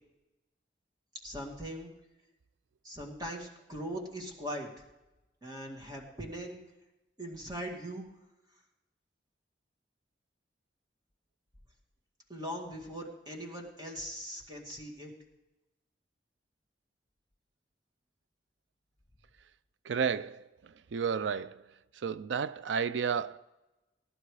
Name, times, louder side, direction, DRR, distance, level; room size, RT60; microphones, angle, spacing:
voice 1, 1.2-1.9 2.8-4.7 5.4-6.6 7.2-8.0 12.3-15.1, equal, 20° right, 2.0 m, -40 dB
voice 2, 19.8-21.7 21.9-23.4, right 6 dB, 85° right, 0.4 m, -32 dB
17.0 x 11.0 x 4.9 m
head